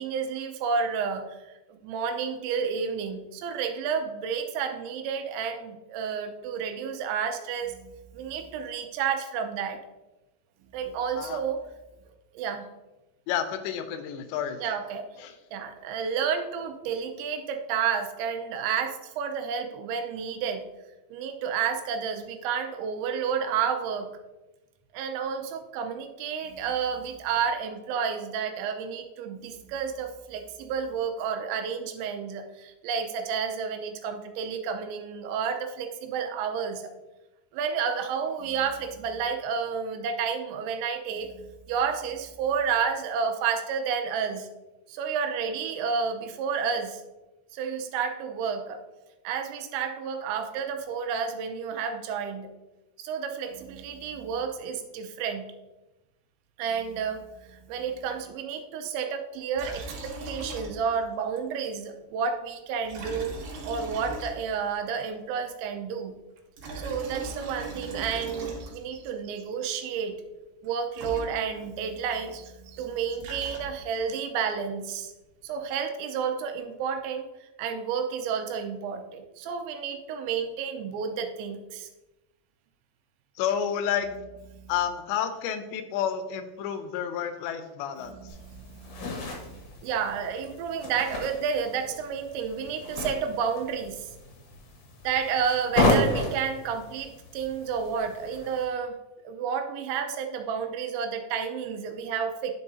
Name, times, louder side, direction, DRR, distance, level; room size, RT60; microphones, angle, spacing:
voice 1, 0.0-9.8 10.7-11.6 12.3-12.7 14.6-15.1 15.5-20.7 21.1-24.1 24.9-36.9 37.5-44.5 44.9-47.0 47.5-48.8 49.2-52.5 53.0-55.5 56.6-63.4 63.7-66.1 66.8-70.2 70.6-75.1 75.4-81.9 84.5-84.7 88.0-94.1 95.0-99.0 99.2-102.5, right 6 dB, 90° right, 5 dB, 3.1 m, -31 dB
voice 2, 13.3-14.6 15.2-15.3 83.4-84.1 84.7-88.2, left 9 dB, 85° left, 9 dB, 2.8 m, -30 dB
Liquid, 59.5-61.1 61.4-61.5 62.8-64.7 66.4-69.0 70.6-70.7 70.9-71.8 72.9-74.0, right 2 dB, 65° right, 2.8 m, -39 dB
sound 1, 88.3-98.6, left 2 dB, 70° left, 2.1 m, -32 dB
11.0 x 4.7 x 2.7 m, 1.0 s
omnidirectional pair, 5.1 m